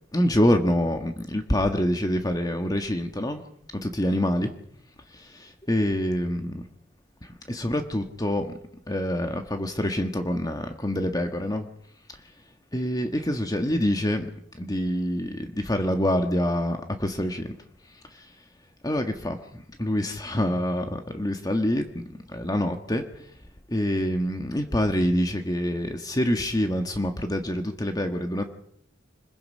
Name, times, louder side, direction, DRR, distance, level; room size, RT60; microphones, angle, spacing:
voice 1, 0.1-3.4 3.7-4.5 5.1-6.6 7.5-8.5 8.9-11.7 12.7-14.3 14.6-17.5 18.1-18.3 18.8-19.4 19.8-23.0 23.7-28.4, left 1 dB, 20° left, 6 dB, 1.5 m, -26 dB
25.5 x 21.0 x 5.6 m, 0.70 s
head